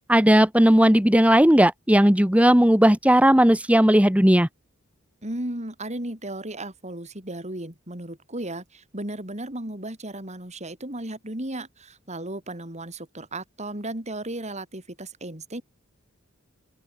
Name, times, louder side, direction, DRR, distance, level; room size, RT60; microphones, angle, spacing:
voice 1, 0.1-4.5, equal, 5° right, 1.6 m, -16 dB
voice 2, 5.2-15.6, right 1 dB, 35° right, 5.1 m, -35 dB
open air
head